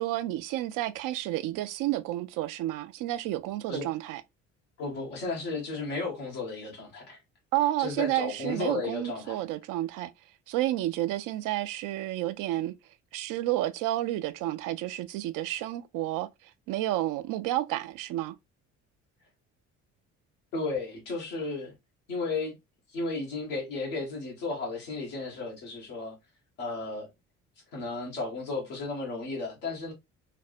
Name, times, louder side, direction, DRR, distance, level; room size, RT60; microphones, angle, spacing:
voice 1, 0.0-4.2 7.5-10.1 10.5-12.7 13.1-16.3 16.7-18.4, right 15 dB, 65° right, 0.5 m, -30 dB
voice 2, 4.8-7.2 7.8-9.4 20.5-21.7 22.1-22.6 22.9-26.2 26.6-27.1 27.7-29.9, left 3 dB, 85° left, 1.4 m, -34 dB
3.3 x 2.0 x 2.5 m
hypercardioid pair, 60°, 35 cm